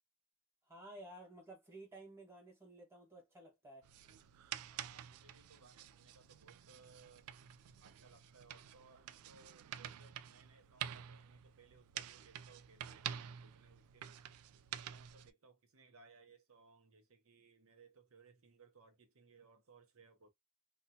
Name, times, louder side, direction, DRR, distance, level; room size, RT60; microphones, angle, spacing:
voice 1, 0.7-3.9, right 1 dB, 10° right, 1.3 m, -54 dB
sound 1, 3.8-15.3, right 10 dB, 85° right, 0.3 m, -49 dB
voice 2, 4.7-7.3 7.8-14.1 14.7-20.3, right 4 dB, 70° right, 0.7 m, -64 dB
2.8 x 2.2 x 2.7 m
head